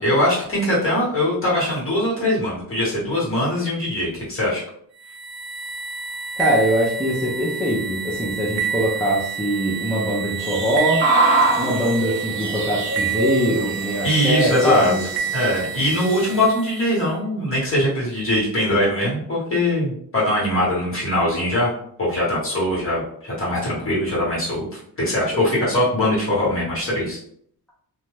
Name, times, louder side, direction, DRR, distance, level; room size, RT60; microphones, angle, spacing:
voice 1, 0.0-4.6 14.0-14.9 15.3-21.7 22.0-27.2, left 1 dB, 35° left, -6 dB, 1.3 m, -21 dB
sound 1, 5.0-17.1, right 8 dB, 75° right, 0.5 m, -29 dB
voice 2, 6.4-11.1 11.6-15.1, equal, 5° left, -7 dB, 0.5 m, -22 dB
sound 2, 10.4-16.4, right 2 dB, 30° right, 1.0 m, -25 dB
2.6 x 2.2 x 3.1 m, 0.64 s
wide cardioid pair, 180°, 37 cm